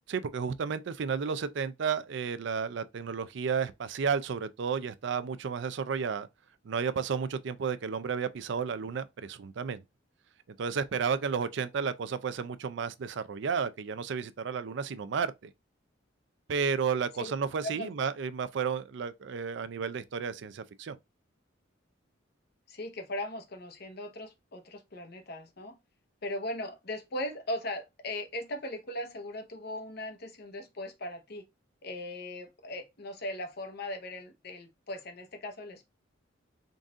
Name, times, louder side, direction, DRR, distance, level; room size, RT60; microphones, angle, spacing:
voice 1, 0.1-6.3 6.6-9.8 10.6-15.5 16.5-21.0, right 6 dB, 65° right, 0.4 m, -32 dB
voice 2, 22.7-25.8 26.2-31.4 31.8-35.9, left 1 dB, 55° left, 0.9 m, -38 dB
3.9 x 2.5 x 3.6 m
head